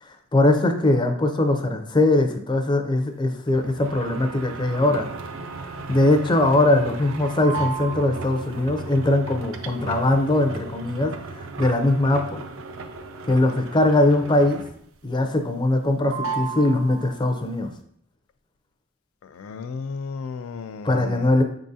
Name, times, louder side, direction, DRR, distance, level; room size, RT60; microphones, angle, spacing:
voice 1, 0.0-5.1 5.6-12.4 13.3-14.6 15.0-17.7 20.8-21.4, left 2 dB, 20° left, 6 dB, 0.5 m, -21 dB
sound 1, 3.5-15.0 15.3-17.4, right 4 dB, 65° right, 0.5 m, -35 dB
voice 2, 19.2-21.4, left 5 dB, 90° left, 10 dB, 0.4 m, -34 dB
5.4 x 3.7 x 2.7 m, 0.68 s
head